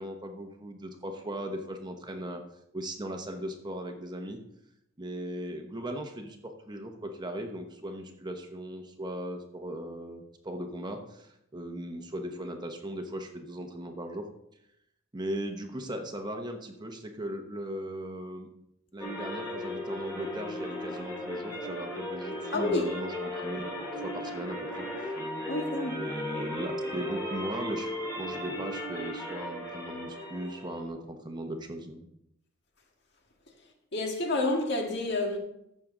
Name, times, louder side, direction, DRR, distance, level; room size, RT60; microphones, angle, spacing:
voice 1, 0.0-2.4 2.7-4.4 5.0-14.3 15.1-18.5 18.9-23.6 23.9-25.1 26.0-32.1, right 1 dB, 20° right, 1.0 m, -38 dB
sound 1, 19.0-30.9, left 1 dB, 15° left, 2.7 m, -36 dB
voice 2, 22.5-22.9 25.5-26.0 33.9-35.4, left 2 dB, 55° left, 1.8 m, -29 dB
15.0 x 6.7 x 3.8 m
head